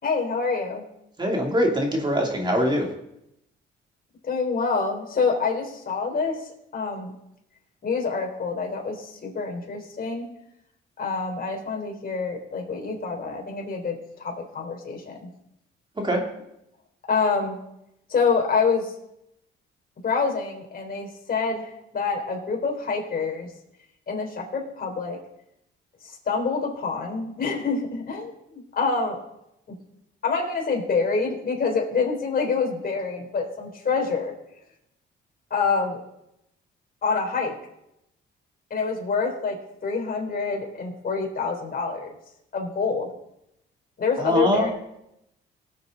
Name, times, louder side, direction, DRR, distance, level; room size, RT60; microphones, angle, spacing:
voice 1, 0.0-0.8 4.2-6.4 6.7-7.1 7.8-10.3 11.0-15.3 17.1-17.6 18.1-18.9 20.0-23.5 24.1-25.2 26.1-29.2 29.7-29.8 30.2-34.3 35.5-36.0 37.0-37.5 38.7-42.1 42.5-43.1 44.0-44.7, left 4 dB, 50° left, 0 dB, 3.9 m, -26 dB
voice 2, 1.2-2.9 16.0-16.2 44.2-44.7, equal, 25° right, 0 dB, 3.0 m, -23 dB
19.0 x 8.1 x 4.0 m, 0.80 s
cardioid pair, 90°, 20 cm